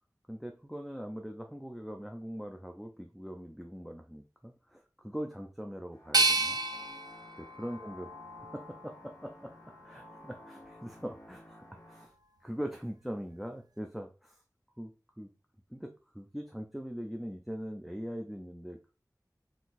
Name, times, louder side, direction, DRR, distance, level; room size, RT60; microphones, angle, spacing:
voice 1, 0.3-6.6 7.6-8.1 8.5-9.5 9.8-12.1 12.4-14.4 14.8-15.3 15.7-18.9, equal, ahead, 3 dB, 0.4 m, -41 dB
sound 1, 5.9-12.0, equal, 45° left, 1.7 m, -54 dB
sound 2, 6.1-9.1 9.6-10.4, right 2 dB, 70° right, 0.4 m, -32 dB
3.8 x 2.4 x 2.5 m, 0.34 s
wide cardioid pair, 40°, 7 cm